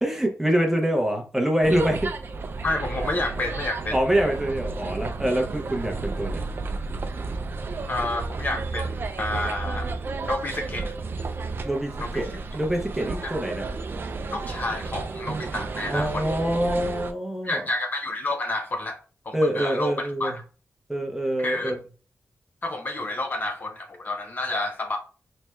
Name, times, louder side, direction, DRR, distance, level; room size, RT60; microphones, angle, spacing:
voice 1, 0.0-2.1 3.9-6.4 11.6-11.9 12.1-13.7 15.9-17.6 19.3-20.3 20.9-21.8, right 1 dB, 5° right, 0.7 m, -25 dB
sound 1, 1.6-17.1, right 3 dB, 45° right, 0.3 m, -32 dB
voice 2, 2.6-4.0 7.9-9.9 10.2-10.9 12.0-12.3 13.2-13.3 14.3-16.3 17.4-20.4 21.4-21.8 22.6-25.0, left 2 dB, 35° left, 0.5 m, -30 dB
4.2 x 3.1 x 2.3 m
wide cardioid pair, 180°, 5 cm